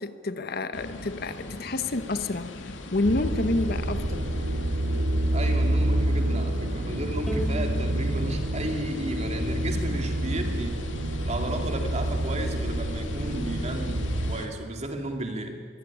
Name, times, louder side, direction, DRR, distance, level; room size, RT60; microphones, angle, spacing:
voice 1, 0.0-4.2, left 2 dB, 55° left, 11 dB, 1.0 m, -29 dB
sound 1, 0.7-14.5, left 2 dB, 80° left, 2.4 m, -41 dB
sound 2, 3.0-14.4, right 1 dB, 75° right, 2.4 m, -28 dB
voice 2, 5.3-10.8 11.2-15.6, right 1 dB, 35° right, 4 dB, 2.6 m, -34 dB
Bowed string instrument, 7.3-10.5, right 1 dB, ahead, 2.5 m, -39 dB
23.0 x 16.0 x 9.9 m, 2.2 s
head